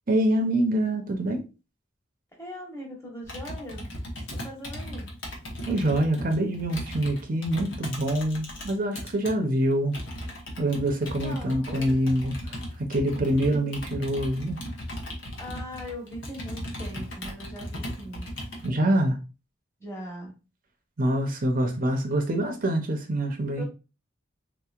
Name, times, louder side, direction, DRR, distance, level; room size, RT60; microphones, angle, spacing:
voice 1, 0.1-1.4 5.7-10.0 10.6-12.3 12.8-14.6 18.6-19.2 21.0-23.6, right 1 dB, 45° right, 0.6 m, -25 dB
voice 2, 2.4-3.9 4.3-5.1 11.2-12.1 13.1-13.7 15.4-18.3 19.8-20.3 23.6-23.7, equal, 15° left, 1.1 m, -40 dB
Computer keyboard, 3.2-9.3 9.9-18.7, equal, 75° left, 1.0 m, -37 dB
3.9 x 2.8 x 2.4 m
head